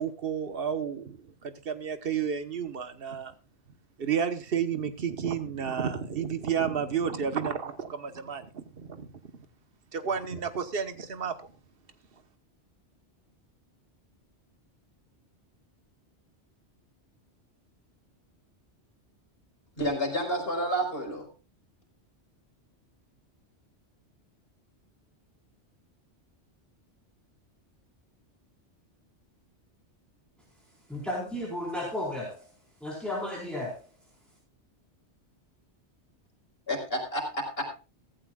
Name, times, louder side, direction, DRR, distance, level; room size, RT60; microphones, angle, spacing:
voice 1, 0.0-3.3 4.0-9.1 9.9-11.3, right 7 dB, 55° right, 10 dB, 1.4 m, -31 dB
voice 2, 19.8-21.3 36.7-37.8, equal, 55° left, 0 dB, 4.9 m, -30 dB
voice 3, 30.9-32.4 32.8-33.8, left 1 dB, ahead, -4 dB, 4.4 m, -33 dB
16.0 x 15.0 x 2.4 m, 0.30 s
omnidirectional pair, 1.2 m